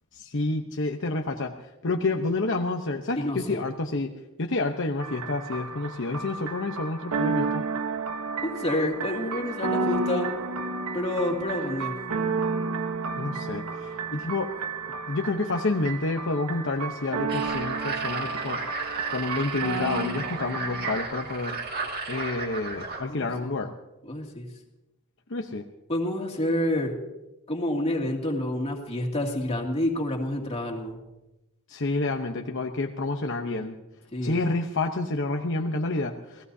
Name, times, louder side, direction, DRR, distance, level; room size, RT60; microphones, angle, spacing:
voice 1, 0.1-4.1 4.4-7.6 13.1-14.5 15.1-18.6 19.1-21.6 22.1-23.7 25.3-25.6 31.7-33.8 34.2-36.4, left 2 dB, 55° left, 2 dB, 0.9 m, -29 dB
voice 2, 3.2-3.6 8.4-10.3 10.9-11.9 23.1-23.5 24.1-24.5 25.9-26.9 27.5-31.0 34.1-34.4, left 1 dB, 25° left, 0 dB, 2.6 m, -28 dB
sound 1, 5.0-21.0, right 4 dB, 85° right, 1.2 m, -31 dB
sound 2, 17.3-23.0, right 4 dB, 45° right, 2.2 m, -34 dB
28.5 x 17.5 x 2.8 m, 0.98 s
head